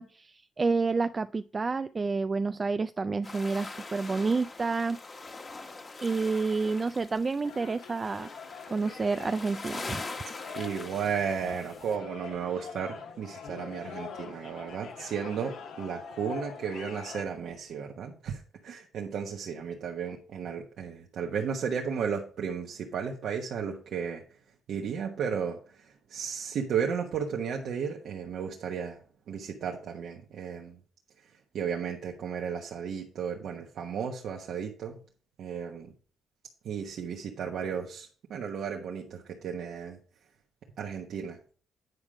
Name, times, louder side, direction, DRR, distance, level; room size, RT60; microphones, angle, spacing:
voice 1, 0.0-5.0 6.0-8.3 8.7-10.0, right 4 dB, 30° right, 0.3 m, -29 dB
sound 1, 3.2-12.0, left 3 dB, 30° left, 1.2 m, -43 dB
sound 2, 7.4-17.2, left 6 dB, 75° left, 1.5 m, -44 dB
voice 2, 10.5-24.2 24.7-29.0 29.3-30.8 31.2-35.0 35.4-35.9 36.6-40.0 40.8-41.4, right 7 dB, 70° right, 1.3 m, -34 dB
9.5 x 5.1 x 5.0 m
cardioid pair, 90°, 0 cm